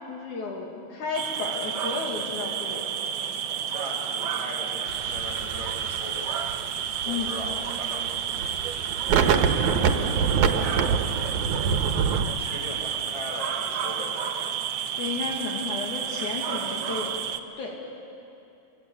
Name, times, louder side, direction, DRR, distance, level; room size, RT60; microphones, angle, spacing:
voice 1, 0.1-2.9 7.1-7.3 15.0-17.1 17.6-17.8, left 4 dB, 75° left, 0 dB, 3.6 m, -33 dB
sound 1, 1.1-17.4, right 8 dB, 60° right, 1.8 m, -31 dB
voice 2, 3.6-6.3 7.0-8.4 9.8-11.0 11.4-11.8 12.0-14.1, equal, 10° left, -3 dB, 6.8 m, -39 dB
sound 2, 4.9-12.2, right 6 dB, 80° right, 2.6 m, -26 dB
26.5 x 23.5 x 8.5 m, 2.8 s
omnidirectional pair, 3.4 m